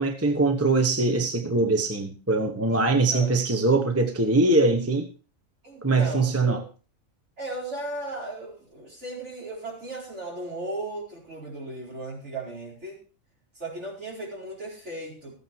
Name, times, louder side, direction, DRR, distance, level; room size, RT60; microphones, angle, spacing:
voice 1, 0.0-5.1 5.8-6.6, right 3 dB, 10° right, 1.1 m, -22 dB
voice 2, 5.6-6.6 7.4-13.0 13.5-15.3, right 2 dB, 55° right, 5.0 m, -36 dB
14.0 x 8.8 x 4.6 m
omnidirectional pair, 1.4 m